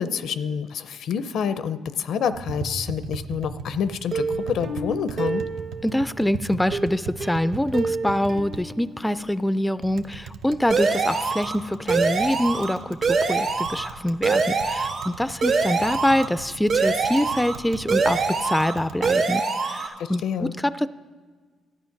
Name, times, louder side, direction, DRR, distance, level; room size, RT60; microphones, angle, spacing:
voice 1, 0.0-5.5 20.0-20.5, left 7 dB, 70° left, 13 dB, 0.5 m, -28 dB
Tap, 2.3-19.1, right 5 dB, 80° right, 0.6 m, -39 dB
Plucked string instrument, 4.1-6.1 6.7-9.5 9.8-9.9 10.3-10.4, right 3 dB, 45° right, 1.0 m, -31 dB
voice 2, 5.8-20.9, left 1 dB, 5° left, 15 dB, 0.3 m, -25 dB
sound 1, 10.7-11.5 11.9-12.7 13.0-13.9 14.2-15.1 15.4-16.3 16.7-17.5 17.9-18.7 19.0-19.9, right 4 dB, 65° right, 1.6 m, -23 dB
12.0 x 9.2 x 5.8 m, 1.5 s
cardioid pair, 90°, 0 cm